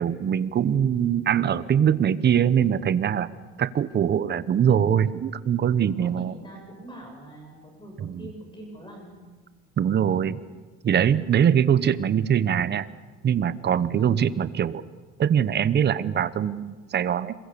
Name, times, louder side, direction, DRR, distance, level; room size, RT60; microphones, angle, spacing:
voice 1, 0.0-3.3 3.6-6.3 8.0-8.3 9.8-10.4 10.8-12.9 13.2-14.8 15.2-17.3, right 9 dB, 35° right, 15 dB, 1.0 m, -22 dB
voice 2, 5.8-9.2 13.9-14.3, equal, 15° left, 1 dB, 7.4 m, -44 dB
27.0 x 22.5 x 6.9 m, 1.3 s
cardioid pair, 115°, 30 cm